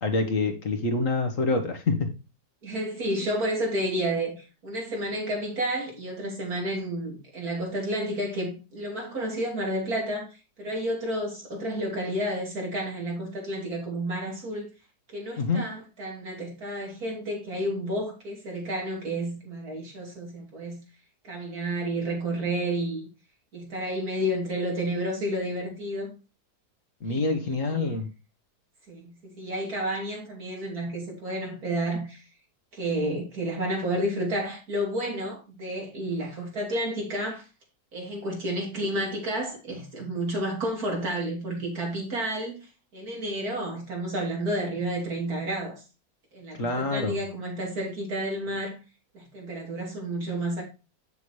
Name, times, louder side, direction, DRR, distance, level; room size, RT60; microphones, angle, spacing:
voice 1, 0.0-2.1 15.4-15.6 27.0-28.1 46.6-47.2, left 3 dB, 55° left, 1.7 m, -26 dB
voice 2, 2.6-14.7 15.1-20.8 21.2-23.1 23.5-26.1 27.1-28.0 28.9-32.2 32.7-37.5 37.9-42.7 42.9-45.8 46.3-48.8 49.1-50.6, right 1 dB, 65° right, 3.6 m, -31 dB
8.1 x 7.1 x 3.1 m
omnidirectional pair, 1.7 m